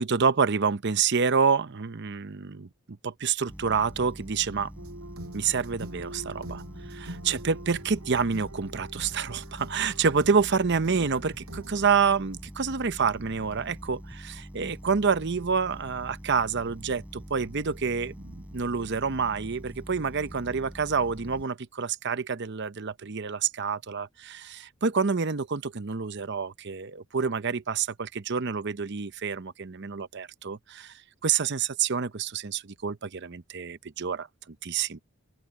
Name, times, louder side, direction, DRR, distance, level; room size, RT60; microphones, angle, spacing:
voice 1, 0.0-4.7 5.3-35.0, right 5 dB, 50° right, 0.7 m, -28 dB
sound 1, 3.5-21.4, equal, 5° right, 7.2 m, -44 dB
sound 2, 4.8-11.9, right 1 dB, 75° right, 7.3 m, -44 dB
open air
head